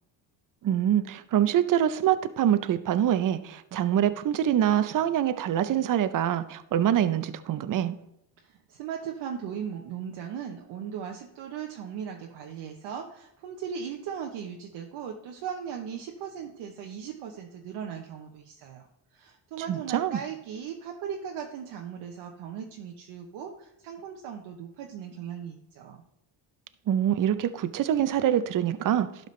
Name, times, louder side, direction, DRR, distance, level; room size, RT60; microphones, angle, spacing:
voice 1, 0.6-7.9 19.7-20.2 26.9-29.1, right 10 dB, 40° right, 13 dB, 0.6 m, -25 dB
voice 2, 8.7-18.9 19.1-26.0, right 8 dB, 70° right, 1 dB, 1.0 m, -38 dB
12.0 x 5.1 x 3.2 m, 0.82 s
supercardioid pair, 75°, 49 cm